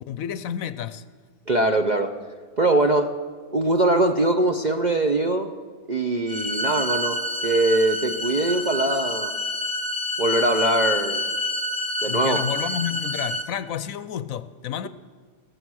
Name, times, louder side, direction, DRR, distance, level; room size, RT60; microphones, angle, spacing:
voice 1, 0.1-1.0 12.1-14.9, left 9 dB, 70° left, 14 dB, 1.0 m, -30 dB
voice 2, 1.5-2.1 2.6-3.1 3.5-5.5 5.9-9.3 10.2-11.2 12.0-12.4, right 2 dB, 40° right, 5 dB, 0.6 m, -22 dB
sound 1, 6.3-13.4, left 1 dB, 5° right, 1.1 m, -28 dB
16.0 x 14.5 x 6.3 m, 1.5 s
omnidirectional pair, 1.6 m